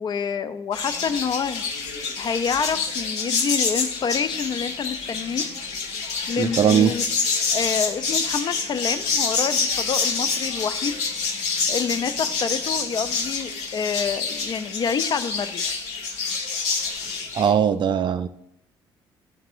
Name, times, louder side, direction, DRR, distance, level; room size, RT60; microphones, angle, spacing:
voice 1, 0.0-1.6 2.2-5.4 6.3-7.1 7.5-11.0 11.7-15.8 17.9-18.0, left 6 dB, 35° left, 12 dB, 0.4 m, -27 dB
sound 1, 0.7-17.5, left 4 dB, 60° left, 1.1 m, -27 dB
voice 2, 6.4-6.9 17.4-18.3, right 8 dB, 35° right, 13 dB, 0.4 m, -19 dB
11.0 x 4.0 x 2.6 m, 0.78 s
figure-of-eight pair, 50°, 13 cm